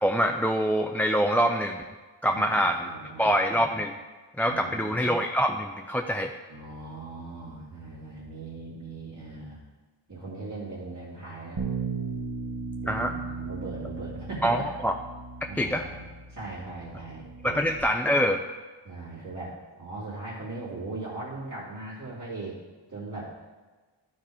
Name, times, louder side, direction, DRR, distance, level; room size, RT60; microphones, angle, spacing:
voice 1, 0.0-1.8 2.2-2.9 3.2-3.9 4.4-6.3 12.9-13.1 14.4-14.9 15.6-15.9 17.4-18.4, equal, 5° left, 3 dB, 0.4 m, -25 dB
voice 2, 2.2-3.3 4.4-5.0 6.5-9.6 10.1-11.6 12.8-14.7 15.5-17.7 18.8-22.6 22.9-23.3, right 3 dB, 40° right, -9 dB, 2.7 m, -39 dB
Bass guitar, 11.6-17.8, right 4 dB, 70° right, 1.2 m, -36 dB
12.0 x 4.4 x 4.9 m, 1.3 s
wide cardioid pair, 45°, 45 cm